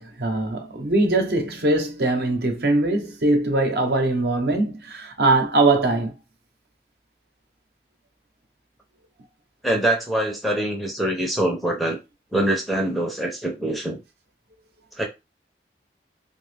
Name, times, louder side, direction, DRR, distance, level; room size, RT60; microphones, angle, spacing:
voice 1, 0.0-6.1, right 2 dB, 65° right, 0.7 m, -21 dB
voice 2, 9.6-12.0 12.3-14.0 15.0-15.1, right 1 dB, ahead, 0.5 m, -24 dB
2.8 x 2.3 x 3.3 m
head